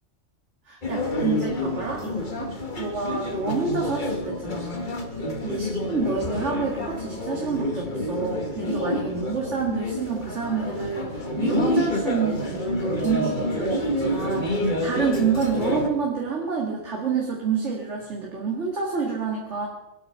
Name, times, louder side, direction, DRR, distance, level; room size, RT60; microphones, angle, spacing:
voice 1, 0.7-2.5 2.8-4.9 5.4-19.7, right 5 dB, 70° right, -2 dB, 2.3 m, -28 dB
sound 1, 0.8-15.9, left 1 dB, 40° left, 1.7 m, -28 dB
23.5 x 9.1 x 5.7 m, 1.1 s
omnidirectional pair, 1.3 m